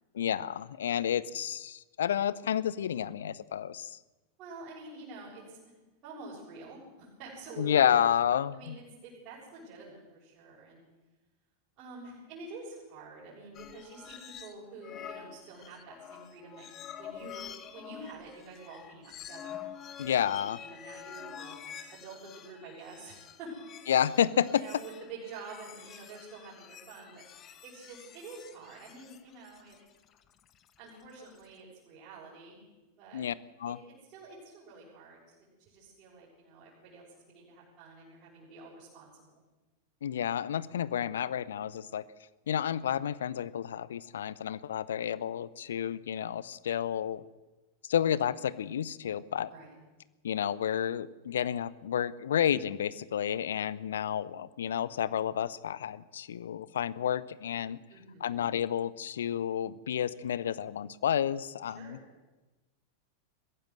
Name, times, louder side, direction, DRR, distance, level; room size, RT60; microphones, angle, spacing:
voice 1, 0.1-4.0 7.6-8.8 20.0-20.6 23.9-24.7 33.1-33.3 33.6-33.8 40.0-42.0 42.5-47.2 47.9-49.5 50.2-57.8 58.2-62.0, left 9 dB, 65° left, 19 dB, 0.7 m, -30 dB
voice 2, 0.8-1.1 4.4-5.7 6.0-8.0 8.5-10.8 11.8-19.6 20.1-21.6 21.9-23.6 24.5-27.2 27.6-29.8 30.8-32.6 33.0-33.3 33.6-35.2 35.6-39.2 49.5-49.7 57.9-58.4 61.7-62.1, right 3 dB, 40° right, -7 dB, 7.2 m, -48 dB
sound 1, 13.5-14.5 14.8-31.5, left 9 dB, 30° left, 1.6 m, -48 dB
22.0 x 15.5 x 7.8 m, 1.1 s
figure-of-eight pair, 90°, 0 cm